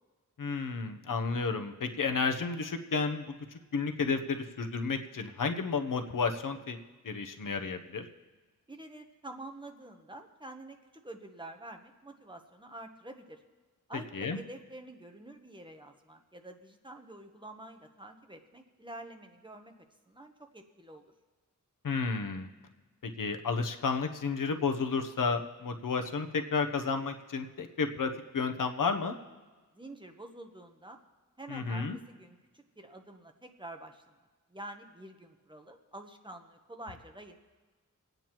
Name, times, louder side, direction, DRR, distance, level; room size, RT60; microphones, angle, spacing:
voice 1, 0.4-3.2 3.7-6.8 7.0-8.1 14.1-14.4 21.8-22.5 23.2-29.1 31.5-32.0, left 4 dB, 75° left, 6 dB, 0.9 m, -32 dB
voice 2, 8.7-10.8 11.0-13.4 13.9-19.7 20.1-21.1 29.7-31.0 31.4-34.0 34.5-37.4, right 1 dB, 15° right, 4 dB, 0.9 m, -48 dB
27.0 x 9.1 x 3.0 m, 1.3 s
wide cardioid pair, 120°, 32 cm